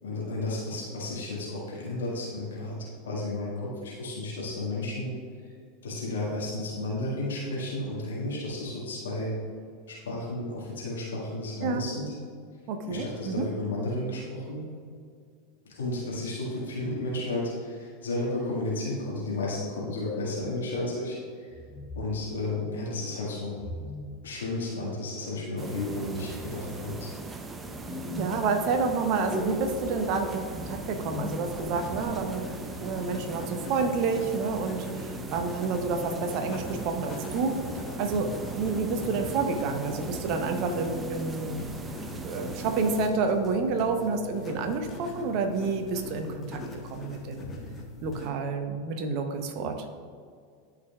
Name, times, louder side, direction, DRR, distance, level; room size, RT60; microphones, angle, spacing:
voice 1, 0.0-2.8 3.1-5.1 5.8-9.3 10.1-12.1 12.9-14.6 15.8-21.5 22.0-23.6 24.2-27.1, left 2 dB, 75° left, -5 dB, 1.8 m, -33 dB
voice 2, 12.7-13.5 28.2-37.6 38.0-41.8 42.2-47.5 48.0-49.8, right 4 dB, 50° right, 5 dB, 0.8 m, -29 dB
sound 1, 19.9-20.5 21.5-22.2 23.5-24.2 25.6-26.3 27.6-28.3 29.1-29.9 30.9-32.1, left 2 dB, 5° left, 0.9 m, -38 dB
sound 2, 25.6-43.1, right 3 dB, 20° right, 0.7 m, -39 dB
sound 3, 30.5-48.3, left 2 dB, 25° left, 1.2 m, -42 dB
12.0 x 4.9 x 2.4 m, 2.1 s
figure-of-eight pair, 85°, 0 cm